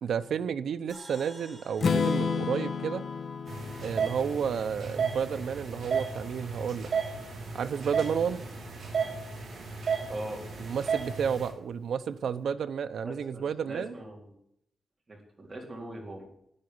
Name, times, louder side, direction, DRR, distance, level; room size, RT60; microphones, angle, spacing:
voice 1, 0.0-3.1 3.8-6.9 7.5-8.4 10.6-14.0, right 7 dB, 85° right, 10 dB, 0.7 m, -31 dB
sound 1, 0.9-4.2, right 1 dB, ahead, 6.4 m, -53 dB
Strum, 1.8-5.7, left 5 dB, 55° left, 0.9 m, -32 dB
sound 2, 3.5-11.5, right 5 dB, 50° right, 5.8 m, -33 dB
voice 2, 10.1-10.4 13.0-14.3 15.1-16.3, right 1 dB, 25° right, 0 dB, 3.9 m, -41 dB
11.5 x 9.6 x 9.3 m, 0.74 s
wide cardioid pair, 165°, 0 cm